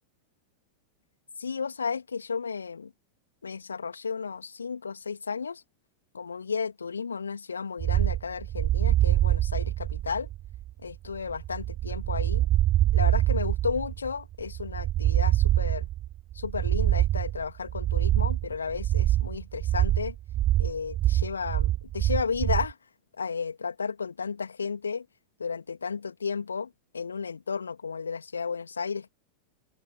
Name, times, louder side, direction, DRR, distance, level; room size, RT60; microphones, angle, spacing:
voice 1, 1.4-2.9 3.4-5.6 6.1-10.3 10.8-12.5 12.9-15.9 16.3-20.1 20.6-22.8 23.2-25.0 25.4-29.1, left 5 dB, 75° left, 3.1 m, -33 dB
sound 1, 7.8-22.7, right 14 dB, 35° right, 0.5 m, -25 dB
open air
figure-of-eight pair, 90°, 0 cm